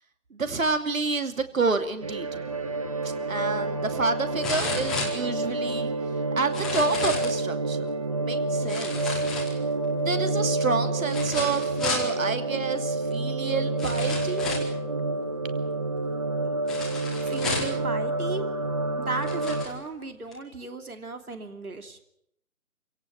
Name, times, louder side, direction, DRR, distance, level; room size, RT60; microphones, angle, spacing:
voice 1, 0.3-2.6 3.0-5.9 6.4-7.9 8.2-9.2 10.0-14.5, right 4 dB, 65° right, 8 dB, 2.7 m, -29 dB
sound 1, 2.0-19.7, right 2 dB, 25° right, 0.9 m, -28 dB
sound 2, 3.0-3.1 4.4-5.7 6.4-7.4 8.7-9.8 11.1-12.1 13.1-13.2 13.8-14.8 16.7-17.8 18.6-18.7 19.1-19.7 20.3-20.4, left 3 dB, ahead, 1.5 m, -32 dB
voice 2, 17.3-18.5 19.0-22.0, right 3 dB, 80° right, 7 dB, 2.9 m, -35 dB
27.0 x 17.0 x 7.8 m, 0.74 s
figure-of-eight pair, 165°, 44 cm